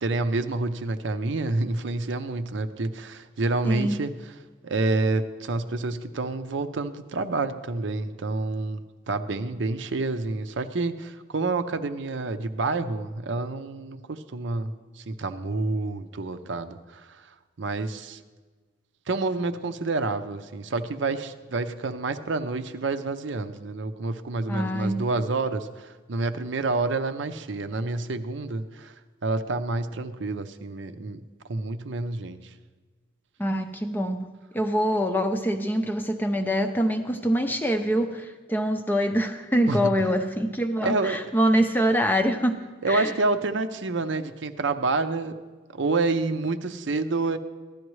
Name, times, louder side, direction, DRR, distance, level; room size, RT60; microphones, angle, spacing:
voice 1, 0.0-4.1 4.6-17.3 17.6-18.2 19.1-28.9 29.2-31.2 31.5-32.5 39.7-39.9 40.8-41.2 42.8-45.4 45.7-47.4, right 3 dB, 65° right, 9 dB, 0.6 m, -28 dB
voice 2, 3.6-4.0 24.5-25.0 33.4-42.6 42.9-43.1, equal, 10° left, 6 dB, 0.5 m, -25 dB
15.0 x 12.0 x 3.1 m, 1.4 s
head